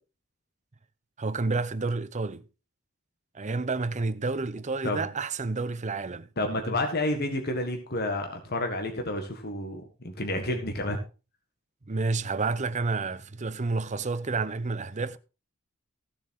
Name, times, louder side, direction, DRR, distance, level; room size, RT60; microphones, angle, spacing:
voice 1, 1.2-2.4 3.3-6.3 11.9-15.2, right 3 dB, 35° right, 0.7 m, -30 dB
voice 2, 6.4-11.0, left 1 dB, 50° left, 1.7 m, -30 dB
15.0 x 7.2 x 4.6 m
head